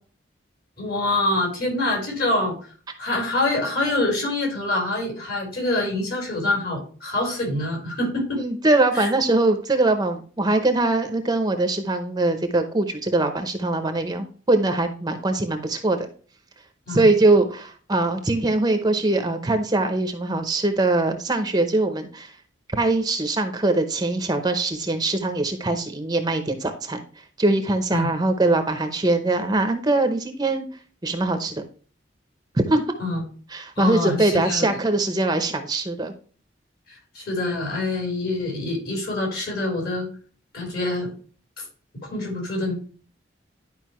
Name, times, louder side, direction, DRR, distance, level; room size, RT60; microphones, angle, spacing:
voice 1, 0.8-8.4 8.9-9.1 16.9-17.1 27.9-28.1 33.0-33.2 33.8-34.7 36.9-40.1 40.5-41.1 41.6-41.7 42.1-42.7, left 2 dB, 55° left, -1 dB, 4.6 m, -25 dB
voice 2, 8.4-16.1 16.9-22.3 22.8-27.0 27.4-30.7 31.0-31.6 32.5-32.9 33.5-36.1, right 2 dB, 20° right, 7 dB, 0.8 m, -22 dB
11.0 x 5.1 x 3.0 m, 0.41 s
head